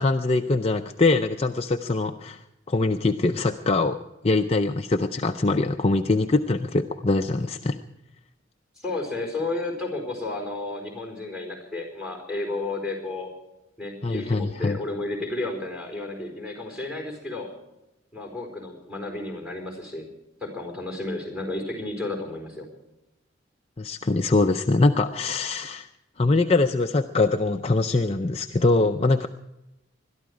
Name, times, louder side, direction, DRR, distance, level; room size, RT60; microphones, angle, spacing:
voice 1, 0.0-4.0 4.2-7.8 14.0-14.8 23.8-25.9 26.2-29.3, left 3 dB, 30° left, 5 dB, 0.5 m, -23 dB
voice 2, 8.8-13.3 13.8-17.5 18.1-20.1 20.4-22.7, left 2 dB, 5° right, 2 dB, 4.6 m, -32 dB
21.5 x 13.0 x 4.9 m, 0.95 s
head